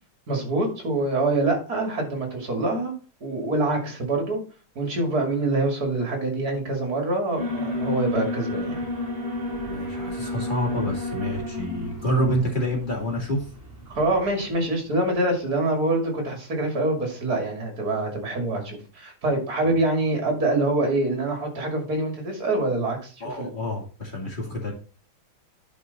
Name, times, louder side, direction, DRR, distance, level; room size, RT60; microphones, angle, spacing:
voice 1, 0.3-2.9 3.2-4.4 4.7-8.8 13.9-23.1 23.4-23.5, right 2 dB, 45° right, 2 dB, 2.9 m, -25 dB
Alarm, 7.4-14.5, left 2 dB, 10° right, 3.1 m, -31 dB
voice 2, 9.6-13.5 19.7-19.8 23.2-24.7, equal, 20° left, -1 dB, 2.7 m, -28 dB
10.5 x 4.7 x 4.1 m, 0.37 s
omnidirectional pair, 2.4 m